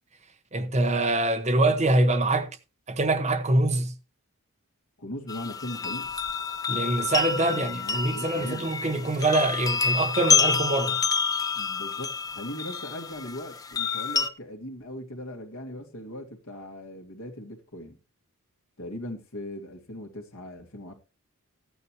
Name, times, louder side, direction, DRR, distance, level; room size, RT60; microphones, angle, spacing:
voice 1, 0.5-2.5 2.9-3.9 6.7-11.0, right 2 dB, 30° right, 1.0 m, -24 dB
voice 2, 5.0-6.1 7.3-8.7 11.6-18.0 18.8-20.9, left 1 dB, 65° left, 2.3 m, -39 dB
sound 1, 5.3-14.3, left 5 dB, 15° left, 0.6 m, -28 dB
14.0 x 9.3 x 3.0 m
head